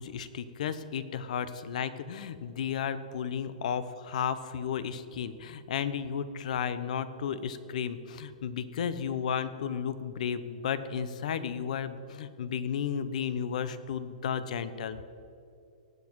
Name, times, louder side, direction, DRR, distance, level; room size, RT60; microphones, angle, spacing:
voice 1, 0.0-15.0, left 7 dB, 65° left, 14 dB, 0.8 m, -33 dB
18.5 x 7.4 x 4.8 m, 2.6 s
hypercardioid pair, 155°, 4 cm